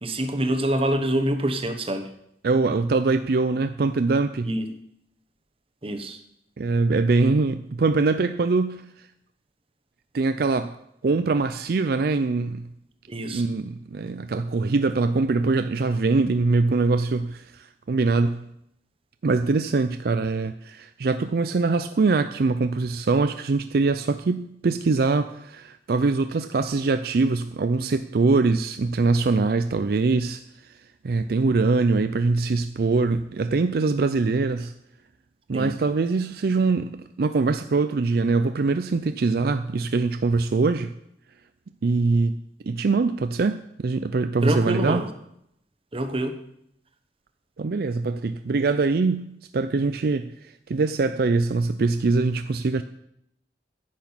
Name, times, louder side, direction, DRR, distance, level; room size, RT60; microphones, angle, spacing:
voice 1, 0.0-2.1 4.4-4.7 5.8-6.2 13.1-13.4 35.5-35.8 44.4-45.1 45.9-46.4, right 1 dB, 30° right, 7 dB, 1.1 m, -26 dB
voice 2, 2.4-4.5 6.6-8.8 10.1-10.7 11.0-12.7 13.3-18.4 19.2-30.4 31.0-34.7 35.5-40.9 41.8-42.4 42.6-45.0 47.6-52.8, right 3 dB, 60° right, 10 dB, 0.4 m, -23 dB
10.5 x 6.1 x 8.7 m, 0.76 s
head